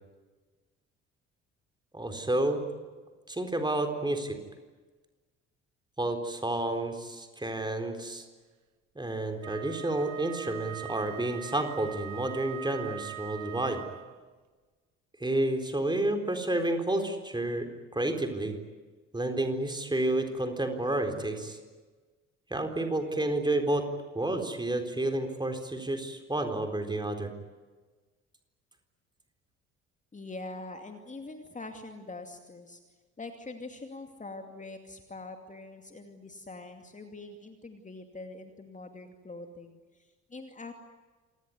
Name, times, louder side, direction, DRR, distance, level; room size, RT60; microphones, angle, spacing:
voice 1, 1.9-2.6 3.3-4.4 6.0-8.2 9.0-13.8 15.2-18.5 19.1-21.6 22.5-23.9 24.1-27.3, right 1 dB, 10° right, 5 dB, 4.0 m, -30 dB
Wind instrument woodwind instrument, 9.4-14.3, right 12 dB, 50° right, 1.3 m, -42 dB
voice 2, 30.1-32.8 33.2-40.7, left 2 dB, 20° left, 5 dB, 2.5 m, -44 dB
27.5 x 19.0 x 9.7 m, 1.3 s
figure-of-eight pair, 50°, 35 cm